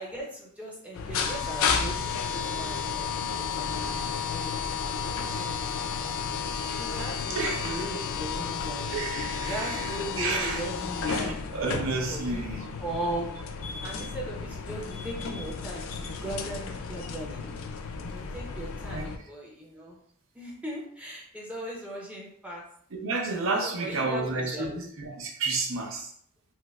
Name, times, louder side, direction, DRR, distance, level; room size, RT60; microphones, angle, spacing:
voice 1, 0.0-3.7 4.3-5.9 6.7-8.9 9.5-11.3 12.1-12.4 12.8-13.3 13.8-17.4 18.0-20.0 20.4-22.6 23.6-24.7, right 1 dB, 5° right, -4 dB, 0.6 m, -38 dB
sound 1, 0.9-19.2, left 6 dB, 65° left, 0.4 m, -32 dB
voice 2, 7.3-7.9 8.9-10.7 11.1-12.7 18.9-19.3 22.9-26.1, right 3 dB, 60° right, 1 dB, 0.6 m, -31 dB
4.3 x 2.0 x 2.3 m, 0.64 s
head